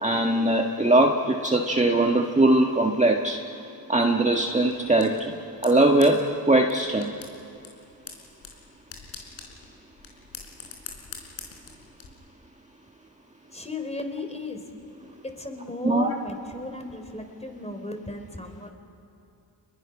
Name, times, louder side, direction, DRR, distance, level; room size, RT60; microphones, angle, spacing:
voice 1, 0.0-3.4 3.9-5.3 5.6-7.1 15.8-16.1, right 2 dB, 15° right, 2 dB, 1.8 m, -21 dB
sound 1, 4.3-12.1, left 6 dB, 90° left, 4.3 m, -45 dB
voice 2, 13.5-14.7 15.2-18.7, left 2 dB, 15° left, 5 dB, 4.2 m, -35 dB
29.5 x 21.5 x 6.2 m, 2.8 s
supercardioid pair, 50°, 47 cm